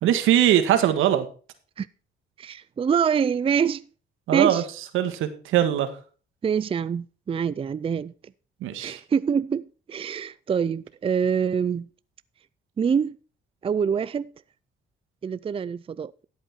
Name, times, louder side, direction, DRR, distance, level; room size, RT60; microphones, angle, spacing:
voice 1, 0.0-1.3 4.3-4.6 4.9-5.9 8.6-9.0, right 11 dB, 90° right, 1.7 m, -21 dB
voice 2, 2.4-3.8 4.3-4.6 6.4-8.1 8.8-11.9 12.8-13.2 13.6-14.3 15.2-16.1, right 7 dB, 30° right, 0.4 m, -25 dB
13.0 x 8.3 x 4.4 m
cardioid pair, 90°, 20 cm